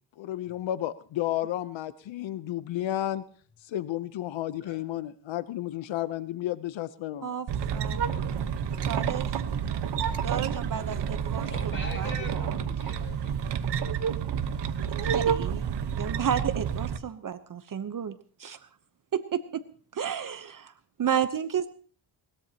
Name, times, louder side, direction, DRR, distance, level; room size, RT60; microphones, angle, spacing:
voice 1, 0.2-3.2 3.6-7.3, left 13 dB, 85° left, 13 dB, 0.8 m, -32 dB
sound 1, 7.5-17.0, right 7 dB, 65° right, 1.2 m, -29 dB
voice 2, 8.9-9.4 10.2-11.5 11.9-12.6 15.0-18.6 19.1-19.6 19.9-20.7 21.0-21.7, right 8 dB, 45° right, 10 dB, 0.9 m, -32 dB
voice 3, 11.4-13.5, left 1 dB, 25° left, 3 dB, 7.1 m, -41 dB
21.0 x 20.5 x 2.9 m, 0.43 s
wide cardioid pair, 150°, 45 cm